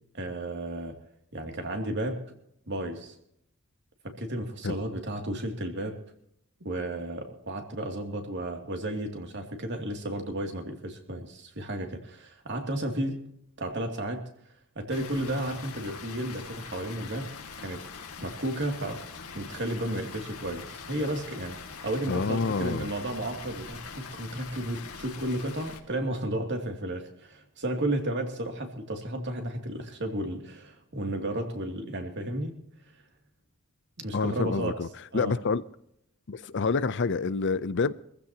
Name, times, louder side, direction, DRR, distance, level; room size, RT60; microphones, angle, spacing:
voice 1, 0.1-1.0 1.3-2.2 2.7-3.1 4.0-6.0 6.6-13.2 13.6-14.2 14.7-17.3 17.6-17.8 18.2-19.0 19.3-21.6 21.8-32.6 34.0-34.7 35.1-35.4, right 1 dB, 55° right, 2.7 m, -33 dB
Water, 14.9-25.8, left 5 dB, 85° left, 2.1 m, -43 dB
voice 2, 22.1-22.9 34.1-34.9 35.1-35.6 36.3-37.9, left 4 dB, 55° left, 0.6 m, -27 dB
24.0 x 15.0 x 2.9 m
head